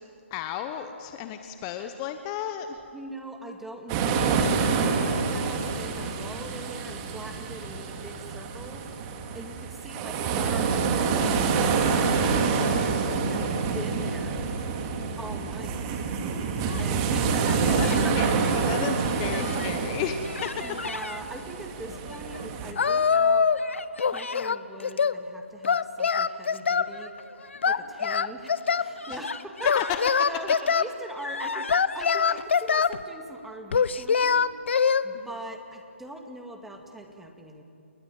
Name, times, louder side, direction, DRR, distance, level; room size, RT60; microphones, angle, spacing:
voice 1, 0.3-2.8 17.6-17.9 18.2-20.6 29.1-29.2 29.8-30.0 35.1-35.3, left 10 dB, 25° left, 8 dB, 1.0 m, -34 dB
voice 2, 2.9-8.8 9.3-13.5 13.7-14.5 15.2-15.9 16.8-18.1 18.5-19.0 20.6-23.5 24.0-27.1 27.7-30.0 30.3-31.7 31.9-34.5 35.0-37.6, right 1 dB, 5° right, 3 dB, 2.2 m, -42 dB
sound 1, 3.9-22.7, right 5 dB, 25° right, 2.5 m, -27 dB
Human voice, 16.3-16.9 17.3-18.1 18.6-19.8 20.2-21.2 21.8-22.6 23.5-24.5 26.8-27.7 28.4-28.5 29.0-30.0 30.5-32.0, left 4 dB, 80° left, 1.1 m, -38 dB
Singing, 22.8-23.7 24.0-25.2 25.6-26.9 27.6-28.9 29.6-30.9 31.7-33.0 33.7-35.0, left 6 dB, 60° left, 1.0 m, -23 dB
30.0 x 19.5 x 9.0 m, 2.7 s
figure-of-eight pair, 140°, 7 cm